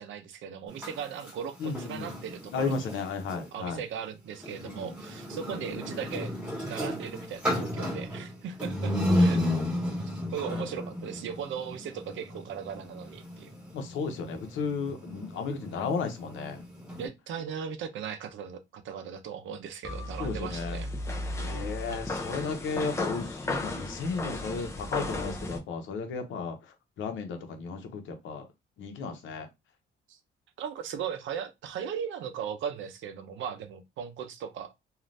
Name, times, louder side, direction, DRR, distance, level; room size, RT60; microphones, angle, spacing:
voice 1, 0.0-2.9 3.5-6.3 6.6-9.4 10.0-13.6 17.0-20.9 21.9-22.5 30.1-30.2 30.6-34.7, right 8 dB, 75° right, 0.6 m, -38 dB
sound 1, 0.7-3.5 4.3-17.1, equal, 5° right, 1.7 m, -33 dB
voice 2, 1.6-2.1 2.5-3.8 4.6-4.9 9.0-9.5 13.7-16.6 20.2-20.8 21.4-28.5 28.8-29.5, left 4 dB, 80° left, 0.8 m, -34 dB
sound 2, 19.8-25.6, left 2 dB, 15° left, 0.6 m, -35 dB
3.2 x 2.4 x 2.6 m
cardioid pair, 135°, 20 cm